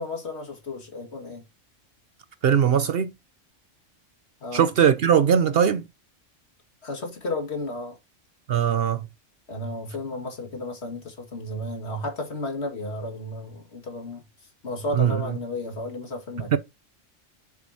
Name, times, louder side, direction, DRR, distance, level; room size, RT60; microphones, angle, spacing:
voice 1, 0.0-1.4 4.4-4.6 6.8-8.0 9.5-14.2 14.6-16.6, left 2 dB, 60° left, 2.1 m, -33 dB
voice 2, 2.4-3.1 4.5-5.8 8.5-9.1 14.9-15.4 16.5-16.6, right 8 dB, 60° right, 0.7 m, -20 dB
7.9 x 7.0 x 2.7 m
omnidirectional pair, 1.3 m